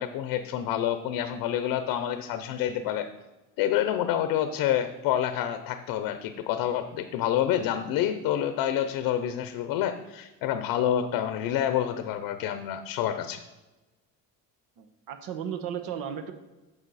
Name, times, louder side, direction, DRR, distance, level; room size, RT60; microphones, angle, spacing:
voice 1, 0.0-3.1 3.6-13.4, left 10 dB, 85° left, 9 dB, 0.7 m, -28 dB
voice 2, 14.8-16.3, right 8 dB, 75° right, 8 dB, 1.1 m, -35 dB
9.9 x 6.9 x 4.1 m, 1.1 s
cardioid pair, 130°, 35 cm